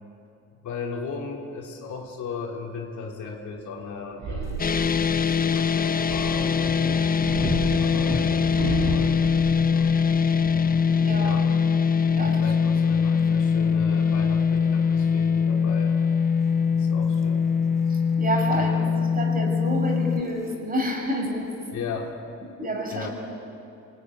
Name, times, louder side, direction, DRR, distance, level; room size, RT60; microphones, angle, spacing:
voice 1, 0.6-4.6 5.1-6.8 7.4-10.0 11.2-11.5 12.2-16.0 16.7-17.5 18.5-19.1 21.7-22.2 22.9-23.1, left 5 dB, 75° left, 0 dB, 3.6 m, -37 dB
sound 1, 4.2-6.6 7.2-10.3 10.7-11.2, right 3 dB, 70° right, 7.8 m, -34 dB
Thunder, 4.4-5.0 5.3-15.6 16.0-16.3 16.8-17.2 17.5-17.6 17.8-17.9 18.2-18.8 19.6-20.5, right 1 dB, 10° right, 2.3 m, -38 dB
sound 2, 4.6-20.2, left 6 dB, 30° left, 0.7 m, -22 dB
voice 2, 10.9-11.5 12.1-12.4 17.9-21.5 22.6-23.1, right 1 dB, 30° right, 2 dB, 6.3 m, -29 dB
24.5 x 20.0 x 9.7 m, 2.7 s
cardioid pair, 90°, 30 cm